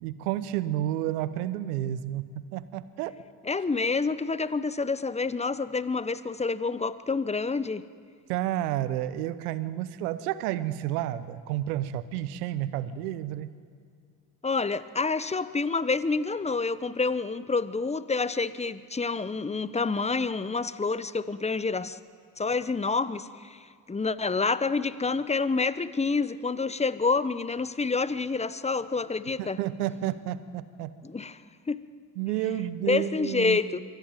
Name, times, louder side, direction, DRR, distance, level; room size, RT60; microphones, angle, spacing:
voice 1, 0.0-3.1 8.3-13.5 29.4-30.9 32.2-33.6, right 12 dB, 85° right, 15 dB, 0.9 m, -31 dB
voice 2, 3.4-7.8 14.4-22.0 22.4-23.6 23.9-29.6 31.0-31.4 31.7-31.8 32.9-33.8, left 4 dB, 15° left, 15 dB, 0.9 m, -28 dB
24.0 x 14.5 x 9.2 m, 2.1 s
hypercardioid pair, 50°, 45 cm